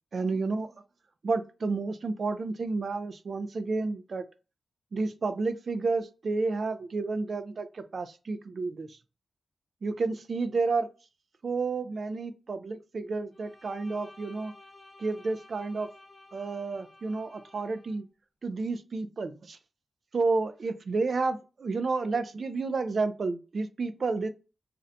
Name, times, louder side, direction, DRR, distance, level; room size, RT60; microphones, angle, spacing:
voice 1, 0.1-0.7 1.2-4.3 4.9-9.0 9.8-10.9 11.4-14.5 15.0-15.9 16.3-18.1 18.4-19.6 20.1-24.3, right 3 dB, 60° right, 0.3 m, -31 dB
Bowed string instrument, 13.3-18.0, left 2 dB, 35° left, 0.5 m, -53 dB
2.5 x 2.1 x 2.6 m
wide cardioid pair, 85°, 0 cm